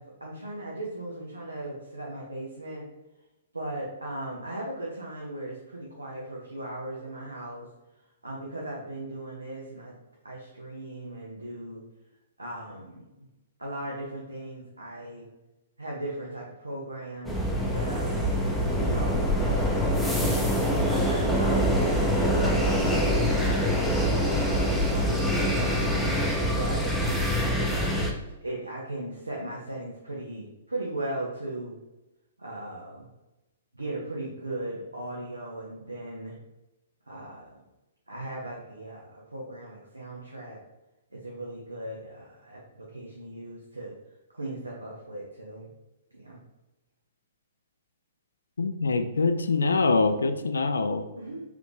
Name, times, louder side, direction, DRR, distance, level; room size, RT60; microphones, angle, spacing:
voice 1, 0.0-2.9 3.5-7.7 8.2-9.9 10.2-11.8 12.4-13.3 13.6-15.3 15.8-17.4 17.7-18.1 18.7-19.9 20.7-27.5 28.4-31.8 32.4-33.1 33.7-36.4 37.1-37.6 38.1-40.6 41.1-43.9 44.3-45.7 46.1-46.4 51.1-51.4, right 1 dB, 85° right, -3 dB, 0.6 m, -38 dB
sound 1, 17.3-28.1, equal, ahead, 0.5 m, -25 dB
voice 2, 48.6-51.0, left 3 dB, 75° left, 8 dB, 0.3 m, -24 dB
3.3 x 2.5 x 3.2 m, 1.0 s
figure-of-eight pair, 115°, 0 cm